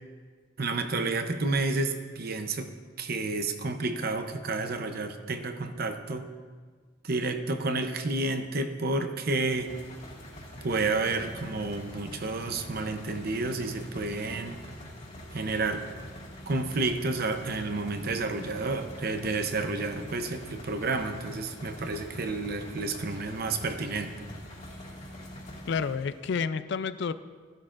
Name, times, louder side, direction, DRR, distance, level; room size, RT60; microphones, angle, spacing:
voice 1, 0.6-2.7 3.0-6.3 7.0-9.7 10.6-14.6 15.3-15.8 16.5-24.1, right 3 dB, 50° right, 7 dB, 0.7 m, -30 dB
sound 1, 9.3-26.2, left 1 dB, 40° left, 2.0 m, -44 dB
voice 2, 25.7-27.1, left 5 dB, 65° left, 13 dB, 0.4 m, -30 dB
13.0 x 11.5 x 2.5 m, 1.5 s
head